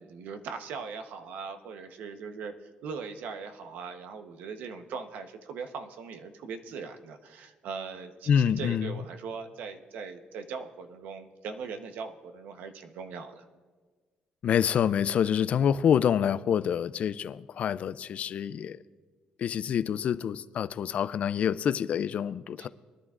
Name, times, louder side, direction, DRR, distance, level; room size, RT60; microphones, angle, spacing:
voice 1, 0.0-13.4 22.6-22.7, right 5 dB, 80° right, 0.9 m, -40 dB
voice 2, 8.3-8.9 14.4-18.8 19.4-22.7, left 8 dB, 50° left, 0.3 m, -27 dB
23.0 x 11.0 x 2.5 m
cardioid pair, 130°, 3 cm